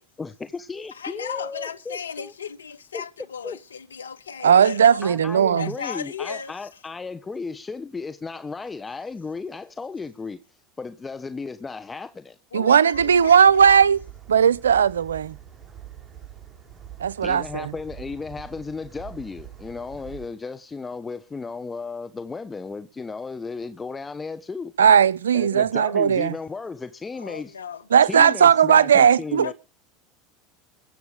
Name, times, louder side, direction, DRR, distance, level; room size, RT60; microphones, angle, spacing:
voice 1, 0.2-2.3 2.9-3.0 3.4-3.6 5.0-10.4 10.8-12.4 17.2-24.7 25.3-27.5 28.0-29.5, left 4 dB, 20° left, 1.2 m, -34 dB
voice 2, 0.9-5.0 5.5-6.5 12.5-13.7 27.1-27.9 29.4-29.5, left 7 dB, 75° left, 1.3 m, -35 dB
voice 3, 4.4-5.7 12.5-14.0 14.3-15.4 17.0-17.7 24.8-26.4 27.9-29.5, right 7 dB, 75° right, 0.6 m, -17 dB
sound 1, 12.9-20.3, right 10 dB, 30° right, 5.3 m, -44 dB
22.0 x 8.0 x 5.2 m
figure-of-eight pair, 75°, 0 cm